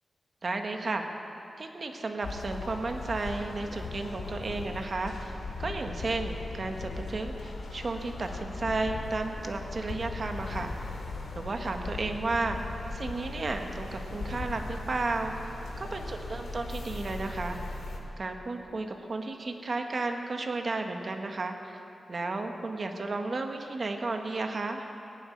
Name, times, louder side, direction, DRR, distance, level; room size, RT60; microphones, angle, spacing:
voice 1, 0.4-1.0 1.6-11.1 11.3-12.6 12.9-15.3 15.8-17.6 18.2-21.7 22.1-24.9, right 3 dB, 40° right, 4 dB, 1.1 m, -33 dB
sound 1, 2.2-18.0, left 3 dB, 85° left, 2.0 m, -38 dB
17.5 x 7.6 x 9.5 m, 2.9 s
wide cardioid pair, 140°, 0 cm